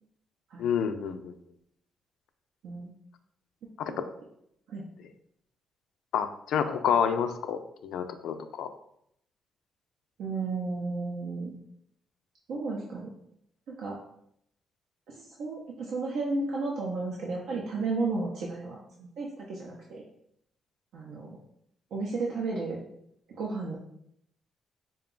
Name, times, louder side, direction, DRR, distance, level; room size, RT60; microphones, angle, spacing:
voice 1, 0.6-1.4 3.8-4.0 6.1-8.7, left 7 dB, 85° left, 8 dB, 0.3 m, -29 dB
voice 2, 10.2-11.6 12.5-13.1 13.7-14.0 15.1-20.0 20.9-21.3 21.9-22.8 23.3-23.8, right 3 dB, 80° right, -3 dB, 0.6 m, -33 dB
3.8 x 2.2 x 3.7 m, 0.73 s
cardioid pair, 120°, 0 cm